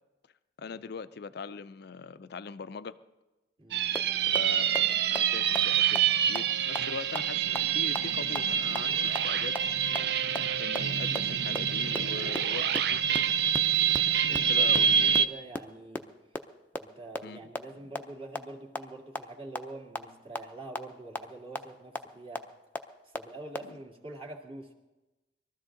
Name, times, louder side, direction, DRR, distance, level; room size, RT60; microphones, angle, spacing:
voice 1, 0.6-3.0 4.2-9.6 10.5-13.0 14.3-15.1 17.2-17.5 23.6-23.8, left 5 dB, 60° left, 14 dB, 0.5 m, -41 dB
voice 2, 3.6-3.9 14.4-16.1 16.8-22.5 23.0-24.7, right 2 dB, 30° right, -1 dB, 2.1 m, -45 dB
sound 1, 3.7-15.3, right 8 dB, 65° right, 0.5 m, -26 dB
sound 2, 3.9-4.0 4.3-4.4 4.7-4.8 5.2-5.3 5.6-5.7 6.0-6.1 6.4-6.5 6.8-6.9 7.2-7.3 7.6-7.7 8.0-8.1 8.4-8.5 8.8-8.9 9.2-9.3 9.6-9.7 10.0-10.1 10.4-10.5 10.7-10.8 11.1-11.2 11.6-11.7 11.9-12.0 12.3-12.4 12.7-12.8 13.1-13.2 13.5-13.6 13.9-14.0 14.3-14.4 14.7-14.8 15.1-15.2 15.6-15.7 16.0-16.1 16.3-16.4 16.8-16.9 17.1-17.2 17.5-17.6 17.9-18.0 18.4-18.5 18.8-18.9 19.2-19.3 19.6-19.7 20.0-20.1 20.4-20.5 20.8-20.9 21.2-21.3 21.6-21.7 22.0-22.1 22.4-22.5 22.8-22.9 23.1-23.2 23.5-23.6, left 2 dB, 10° left, 0.6 m, -31 dB
22.0 x 13.5 x 3.8 m, 1.1 s
head